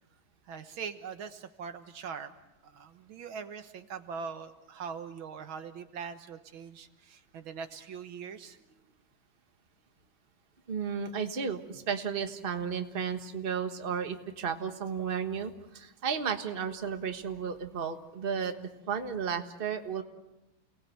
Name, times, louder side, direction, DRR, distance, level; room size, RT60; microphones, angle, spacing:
voice 1, 0.5-2.3 2.6-8.6, right 6 dB, 80° right, 8 dB, 2.1 m, -42 dB
voice 2, 10.7-20.0, right 6 dB, 30° right, 6 dB, 1.5 m, -33 dB
29.5 x 19.5 x 7.9 m, 1.0 s
omnidirectional pair, 2.2 m